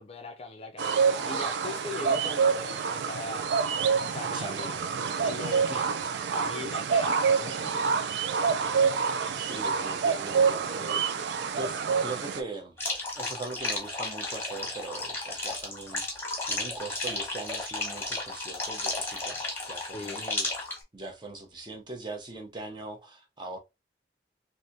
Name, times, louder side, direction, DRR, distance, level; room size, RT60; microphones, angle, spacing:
voice 1, 0.0-3.5 4.0-4.8 5.2-6.0 6.3-7.9 8.8-8.9 19.9-20.3, left 3 dB, 35° left, 0.4 m, -40 dB
sound 1, 0.8-12.4, right 6 dB, 80° right, 0.4 m, -27 dB
voice 2, 4.3-4.9 9.3-11.2 11.6-12.8 13.1-20.6 20.9-23.6, right 2 dB, 25° right, 0.7 m, -41 dB
sound 2, 12.8-20.8, left 2 dB, 15° left, 1.0 m, -33 dB
3.4 x 2.6 x 2.6 m
head